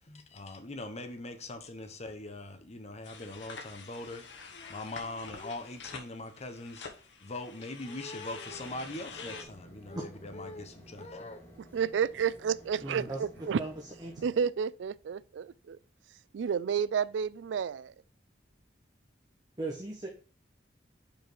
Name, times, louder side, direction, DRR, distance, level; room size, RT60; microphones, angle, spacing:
voice 1, 0.0-11.4, left 2 dB, 40° left, 1.1 m, -42 dB
sound 1, 3.0-9.4, left 5 dB, 85° left, 1.2 m, -47 dB
sound 2, 8.4-14.4, equal, 10° left, 2.1 m, -54 dB
voice 2, 11.7-13.6 14.2-15.8 16.3-17.9, right 7 dB, 85° right, 0.3 m, -31 dB
voice 3, 12.8-13.3 13.5-14.5 19.6-20.1, right 2 dB, 25° right, 1.2 m, -38 dB
5.3 x 5.1 x 4.6 m
head